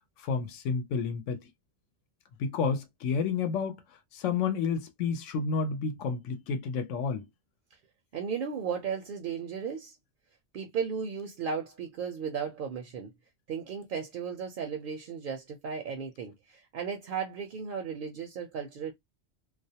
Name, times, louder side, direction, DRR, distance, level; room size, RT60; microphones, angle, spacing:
voice 1, 0.2-1.5 2.4-7.3, left 5 dB, 90° left, 0.9 m, -30 dB
voice 2, 8.1-10.0 10.5-13.1 13.5-18.9, right 6 dB, 60° right, 0.6 m, -35 dB
2.3 x 2.1 x 2.7 m
omnidirectional pair, 1.2 m